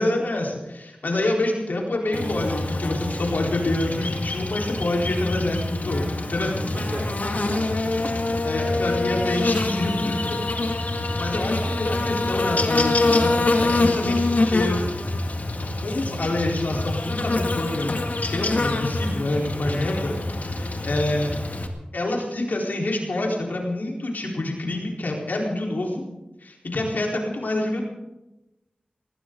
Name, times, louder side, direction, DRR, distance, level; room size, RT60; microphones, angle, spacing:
voice 1, 0.0-6.7 8.4-10.4 11.2-14.8 15.8-18.0 18.3-21.3 21.9-26.0 26.4-27.8, left 2 dB, 85° left, -1 dB, 4.2 m, -27 dB
Buzz, 2.1-21.7, left 2 dB, 60° left, 2.0 m, -25 dB
voice 2, 6.7-7.8 11.4-11.8 19.2-20.6, right 1 dB, 70° right, 0 dB, 5.6 m, -39 dB
19.5 x 18.5 x 3.9 m, 0.97 s
wide cardioid pair, 60°, 3 cm